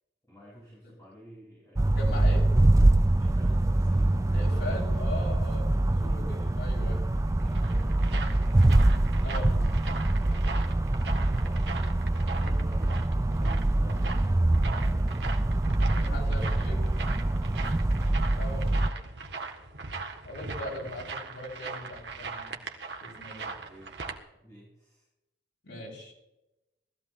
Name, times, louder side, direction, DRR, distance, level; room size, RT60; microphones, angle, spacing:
voice 1, 0.3-2.0 3.2-5.3 5.6-11.8 12.4-17.7 20.6-20.9 23.4-24.1 24.4-25.1, equal, 15° left, -8 dB, 5.8 m, -51 dB
sound 1, 1.8-18.9, right 1 dB, 15° right, 0.4 m, -24 dB
voice 2, 1.9-2.4 4.3-7.0 9.2-9.5 12.3-12.6 15.9-16.8 18.3-19.0 20.2-22.6 23.0-23.5 25.6-26.1, left 1 dB, 80° left, -3 dB, 6.8 m, -40 dB
sound 2, 7.2-24.2, right 4 dB, 70° right, 1.7 m, -40 dB
19.5 x 14.5 x 3.1 m, 0.93 s
head